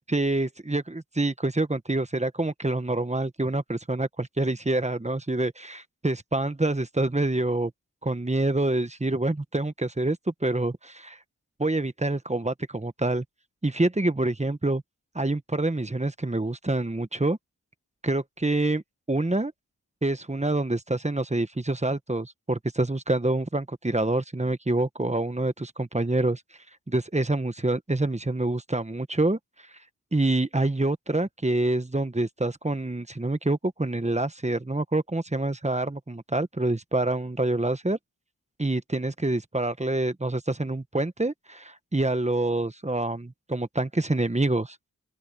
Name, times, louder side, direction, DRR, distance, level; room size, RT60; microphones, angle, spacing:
voice 1, 0.1-7.7 8.0-11.2 11.6-13.2 13.6-14.8 15.1-17.4 18.0-18.8 19.1-19.5 20.0-26.4 26.9-29.4 30.1-38.0 38.6-44.8, right 2 dB, 20° right, 1.2 m, -26 dB
open air
wide cardioid pair, 50°, 34 cm